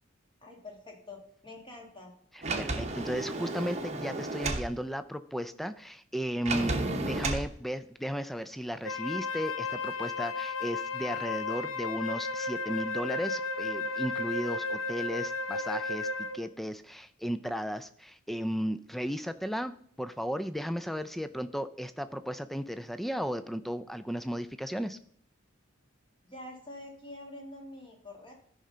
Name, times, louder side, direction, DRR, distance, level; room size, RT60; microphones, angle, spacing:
voice 1, 0.4-2.1 26.2-28.3, left 2 dB, 20° left, 1 dB, 1.7 m, -46 dB
voice 2, 2.3-16.1 16.3-19.7 20.0-25.0, equal, ahead, 12 dB, 0.3 m, -35 dB
Sliding door, 2.4-4.7 6.4-7.5, right 2 dB, 30° right, 0.9 m, -32 dB
Wind instrument woodwind instrument, 8.8-16.5, left 3 dB, 75° left, 0.7 m, -34 dB
13.5 x 5.5 x 3.8 m, 0.62 s
head